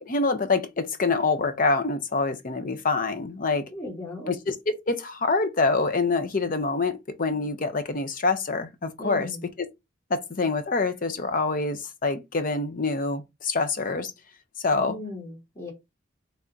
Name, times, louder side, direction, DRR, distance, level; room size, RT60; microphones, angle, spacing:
voice 1, 0.0-3.6 4.3-9.3 10.1-14.1 14.6-15.0, left 3 dB, 45° left, 0.6 m, -26 dB
voice 2, 3.7-4.3 9.0-9.5 14.7-15.7, left 1 dB, 20° left, 1.4 m, -37 dB
3.5 x 2.7 x 3.7 m
head